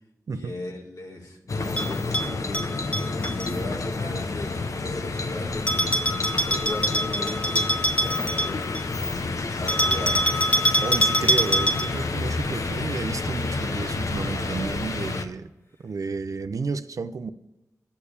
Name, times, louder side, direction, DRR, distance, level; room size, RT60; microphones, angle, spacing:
voice 1, 0.3-6.0 6.5-10.3, left 1 dB, 85° left, 1 dB, 1.9 m, -37 dB
sound 1, 1.5-15.3, left 3 dB, 65° left, 0.8 m, -29 dB
Bell, 1.8-3.5 5.7-8.9 9.7-12.1, equal, 20° left, 1.0 m, -24 dB
sound 2, 3.9-5.7 6.2-6.5 7.1-8.9 10.7-12.1 14.1-15.2 15.7-16.1, equal, 45° left, 2.2 m, -49 dB
voice 2, 10.8-15.5 15.8-17.3, right 4 dB, 75° right, 12 dB, 0.6 m, -31 dB
8.4 x 6.6 x 7.0 m, 0.96 s
wide cardioid pair, 60°, 6 cm